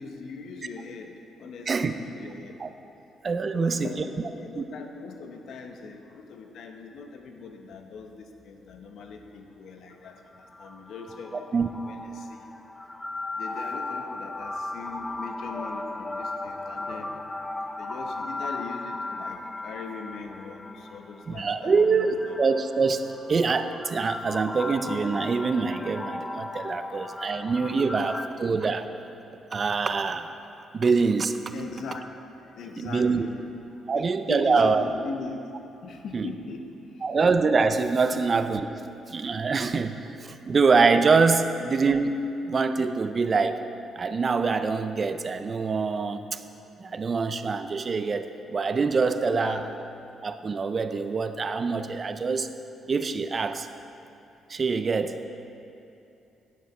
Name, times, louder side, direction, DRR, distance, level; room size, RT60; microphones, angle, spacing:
voice 1, 0.0-2.6 3.5-11.4 11.8-12.5 13.4-22.4 27.4-27.5 31.5-32.1 32.4-33.5 33.7-35.4 35.8-37.0 38.1-38.2 49.3-49.7, left 4 dB, 70° left, 5 dB, 0.8 m, -40 dB
voice 2, 3.2-3.9 4.5-4.7 11.5-11.7 21.3-28.9 29.5-30.3 30.7-31.5 32.8-33.3 33.9-34.8 36.1-36.3 37.0-38.7 39.1-43.7 44.0-46.4 46.8-49.6 50.2-52.5 52.9-53.7 54.5-55.2, right 4 dB, 40° right, 10 dB, 0.4 m, -25 dB
sound 1, 9.9-28.3, left 2 dB, 15° left, 0.5 m, -37 dB
9.5 x 8.1 x 4.3 m, 2.7 s
cardioid pair, 90°, 0 cm